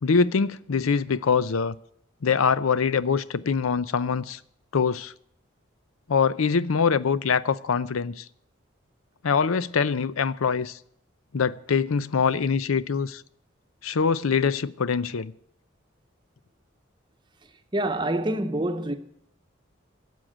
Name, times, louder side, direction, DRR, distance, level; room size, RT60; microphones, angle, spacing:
voice 1, 0.0-1.8 2.2-4.4 4.7-5.1 6.1-8.3 9.2-10.8 11.3-13.2 13.8-15.3, left 5 dB, 90° left, 0.6 m, -24 dB
voice 2, 17.7-18.9, right 1 dB, 20° right, 0.9 m, -26 dB
13.0 x 7.7 x 8.7 m
head